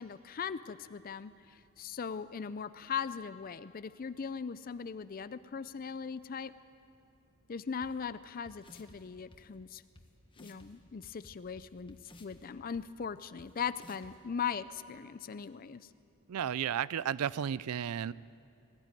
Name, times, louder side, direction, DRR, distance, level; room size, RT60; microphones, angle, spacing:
voice 1, 0.0-6.5 7.5-9.8 10.4-15.9, left 6 dB, 40° left, 14 dB, 0.4 m, -39 dB
sound 1, 7.8-7.9 8.5-9.0 9.3-9.4 10.0-10.1 10.3-10.7 11.0-12.4 12.7-12.8 13.4-13.5 13.8-14.1, left 2 dB, 25° left, 1.4 m, -55 dB
voice 2, 16.3-18.1, right 8 dB, 85° right, 20 dB, 0.4 m, -33 dB
20.0 x 15.0 x 9.1 m, 2.5 s
head